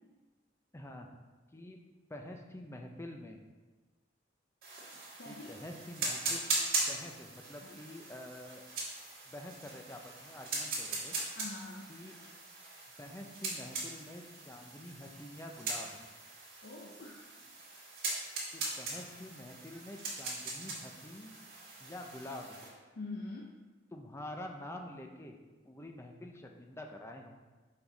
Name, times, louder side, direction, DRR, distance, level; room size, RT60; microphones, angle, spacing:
voice 1, 0.7-1.1 1.5-1.8 2.1-3.4 5.2-6.4 6.9-8.6 9.3-11.1 11.9-12.2 13.0-16.0 18.5-21.4 21.8-22.6 23.9-25.4 25.6-27.3, left 1 dB, 15° left, 3 dB, 0.5 m, -47 dB
sound 1, 4.6-22.7, right 3 dB, 55° right, 1.9 m, -40 dB
voice 2, 5.2-5.6 7.6-7.8 11.4-11.9 16.6-17.2 23.0-23.5, left 2 dB, 60° left, -2 dB, 0.6 m, -44 dB
5.3 x 5.0 x 3.9 m, 1.3 s
head